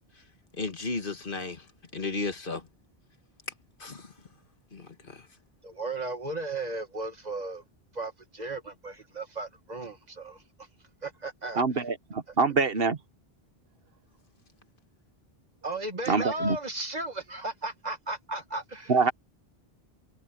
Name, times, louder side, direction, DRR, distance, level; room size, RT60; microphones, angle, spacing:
voice 1, 0.5-1.7 1.9-2.7 3.8-4.1 4.7-5.3, left 3 dB, 60° left, 1.7 m, -34 dB
voice 2, 5.6-7.6 7.9-10.4 11.0-11.6 15.6-18.9, right 2 dB, 40° right, 2.1 m, -35 dB
voice 3, 11.6-13.0 16.1-16.6 18.9-19.1, right 4 dB, 65° right, 1.5 m, -25 dB
omnidirectional pair, 1.0 m